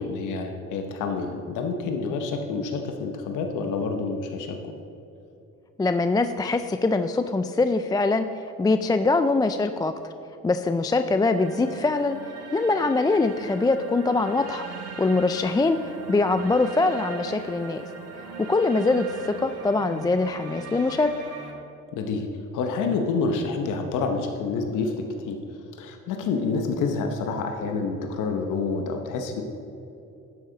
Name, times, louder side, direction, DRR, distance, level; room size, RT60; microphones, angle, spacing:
voice 1, 0.0-4.7 15.4-15.5 21.9-22.3 22.5-25.4 25.8-29.4, left 4 dB, 90° left, 4 dB, 0.9 m, -28 dB
voice 2, 5.8-8.3 8.6-10.1 10.4-12.2 12.5-14.6 15.0-17.8 18.5-21.1, left 3 dB, 15° left, 9 dB, 0.3 m, -23 dB
sound 1, 11.4-21.5, right 4 dB, 55° right, 1.5 m, -40 dB
11.5 x 8.1 x 3.9 m, 2.8 s
cardioid pair, 90°, 30 cm